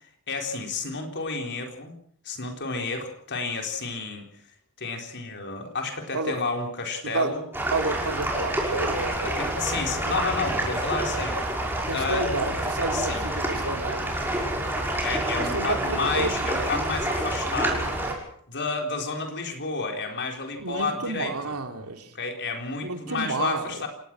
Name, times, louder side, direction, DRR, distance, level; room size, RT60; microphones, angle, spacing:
voice 1, 0.3-2.0 2.2-4.3 4.8-7.4 9.2-11.4 11.9-12.2 12.9-13.2 15.0-18.1 18.5-21.6 22.1-23.9, left 4 dB, 55° left, 3 dB, 4.1 m, -31 dB
voice 2, 7.0-7.4 7.7-9.7 11.9-14.2 15.4-15.7 16.1-16.5 20.6-22.2 22.8-23.8, right 3 dB, 80° right, 5 dB, 2.9 m, -30 dB
sound 1, 7.5-18.1, right 1 dB, 10° right, 6.1 m, -28 dB
28.5 x 18.0 x 6.2 m, 0.63 s
head